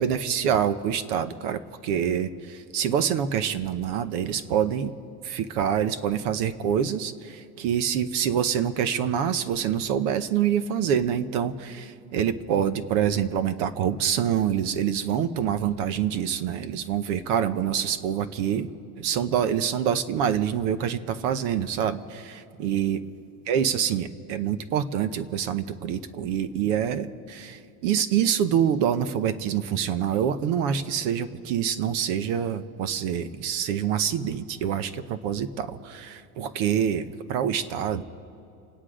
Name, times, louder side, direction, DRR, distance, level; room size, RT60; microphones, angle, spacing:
voice 1, 0.0-4.9 5.2-18.7 19.0-23.0 23.5-38.0, right 9 dB, 55° right, 12 dB, 0.9 m, -26 dB
28.5 x 9.8 x 5.0 m, 2.6 s
supercardioid pair, 160°, 43 cm